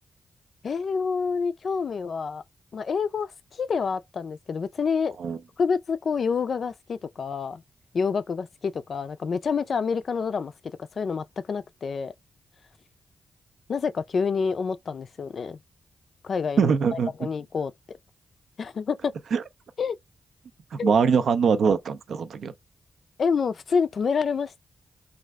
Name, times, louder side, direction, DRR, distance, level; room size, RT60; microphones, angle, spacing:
voice 1, 0.6-2.4 2.7-5.2 5.6-7.6 7.9-10.5 11.0-12.1 13.7-15.6 16.2-18.0 18.6-19.1 19.8-20.0 20.8-20.9 23.2-24.6, left 5 dB, 65° left, 0.3 m, -28 dB
voice 2, 16.6-17.1 19.3-19.4 20.7-22.5, right 6 dB, 80° right, 0.4 m, -22 dB
2.4 x 2.0 x 3.4 m
cardioid pair, 65°, 0 cm